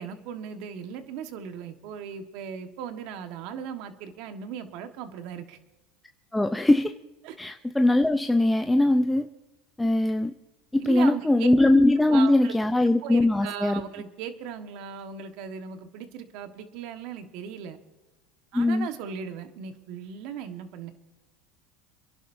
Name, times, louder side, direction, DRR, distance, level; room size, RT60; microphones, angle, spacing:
voice 1, 0.0-5.6 7.2-7.4 10.8-11.5 12.1-12.5 13.0-17.8 18.5-20.9, right 7 dB, 65° right, 7 dB, 1.5 m, -37 dB
voice 2, 6.3-6.9 7.4-9.3 9.8-10.3 10.7-13.8 18.5-18.9, left 1 dB, 5° left, 6 dB, 0.6 m, -21 dB
29.0 x 11.0 x 2.7 m, 1.1 s
supercardioid pair, 110°, 0 cm